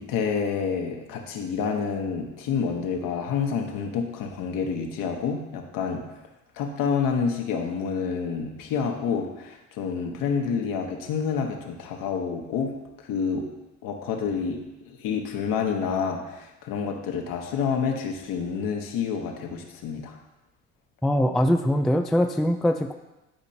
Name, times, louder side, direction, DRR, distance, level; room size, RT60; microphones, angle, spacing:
voice 1, 0.0-6.0 6.6-12.7 13.0-13.5 13.8-14.6 14.8-20.2, left 6 dB, 60° left, 2 dB, 1.3 m, -28 dB
voice 2, 21.0-22.9, equal, ahead, 5 dB, 0.3 m, -22 dB
10.5 x 5.1 x 2.9 m, 1.0 s
hypercardioid pair, 60°, 38 cm